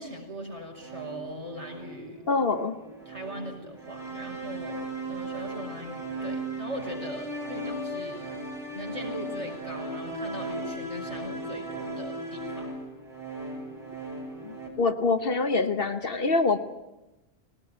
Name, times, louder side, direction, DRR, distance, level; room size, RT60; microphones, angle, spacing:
voice 1, 0.0-2.3 3.1-4.8 5.1-8.3 8.7-12.7, right 1 dB, 30° right, 0 dB, 5.6 m, -40 dB
sound 1, 0.8-14.7, right 1 dB, ahead, 5.8 m, -37 dB
voice 2, 2.3-2.8 14.4-16.6, left 3 dB, 65° left, 9 dB, 1.3 m, -25 dB
20.5 x 18.5 x 9.2 m, 1.0 s
omnidirectional pair, 1.1 m